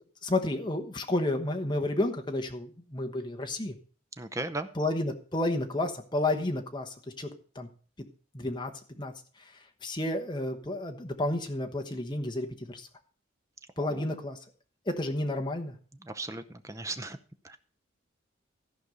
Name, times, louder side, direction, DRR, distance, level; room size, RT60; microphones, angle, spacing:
voice 1, 0.2-3.7 4.7-7.3 7.5-7.7 8.3-8.7 9.0-9.1 9.8-12.9 13.8-14.4 14.9-15.7, left 1 dB, 20° left, 5 dB, 1.2 m, -31 dB
voice 2, 4.2-4.7 13.8-14.0 16.0-17.2 17.4-17.6, right 2 dB, 15° right, 10 dB, 0.6 m, -37 dB
14.0 x 5.3 x 6.4 m, 0.42 s
head